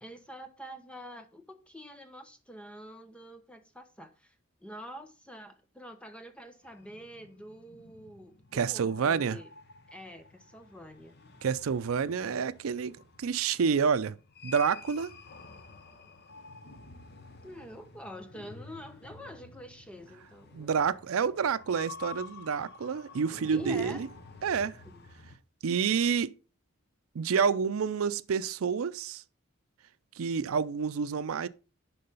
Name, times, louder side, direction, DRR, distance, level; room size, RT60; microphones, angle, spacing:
voice 1, 0.0-4.3 4.6-9.5 9.9-11.2 17.4-20.7 23.5-24.0 24.8-25.0, equal, 5° left, 0.9 m, -46 dB
sound 1, 6.6-25.4, left 4 dB, 50° left, 1.0 m, -50 dB
voice 2, 8.5-9.4 11.4-14.2 14.4-15.1 20.5-24.1 24.4-24.8 25.6-26.3 27.1-29.2 30.2-31.5, right 6 dB, 85° right, 0.5 m, -28 dB
11.0 x 3.9 x 5.4 m
head